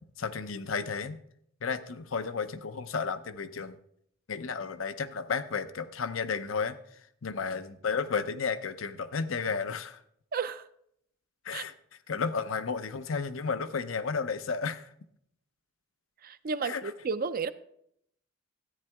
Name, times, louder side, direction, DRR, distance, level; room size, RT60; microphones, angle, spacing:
voice 1, 0.2-1.2 1.6-3.8 4.3-6.8 7.2-10.0 11.4-11.7 12.1-14.9 16.6-16.8, left 5 dB, 75° left, 12 dB, 0.7 m, -32 dB
voice 2, 10.3-10.7 11.5-11.6 16.2-17.5, right 5 dB, 45° right, 12 dB, 0.5 m, -32 dB
13.5 x 9.5 x 3.5 m, 0.69 s
head